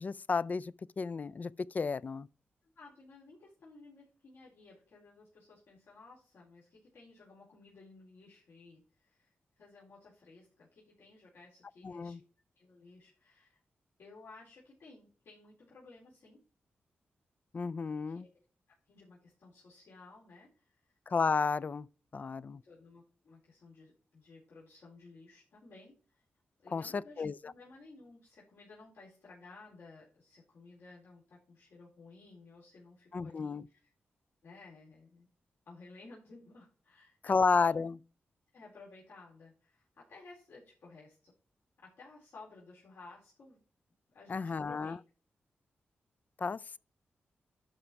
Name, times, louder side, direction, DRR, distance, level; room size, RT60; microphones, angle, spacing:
voice 1, 0.0-2.3 11.8-12.2 17.5-18.3 21.1-21.9 22.1-22.6 26.7-27.5 33.1-33.7 37.3-38.0 44.3-45.0 46.4-46.8, left 4 dB, 40° left, 0.3 m, -32 dB
voice 2, 2.6-12.2 12.6-13.6 14.0-16.4 17.9-18.3 18.9-21.0 22.5-26.2 26.6-33.9 34.4-35.3 35.6-37.9 38.5-41.3 41.8-43.6 44.1-45.0, left 3 dB, 85° left, 4.4 m, -56 dB
11.5 x 5.2 x 4.5 m
cardioid pair, 90°, 4 cm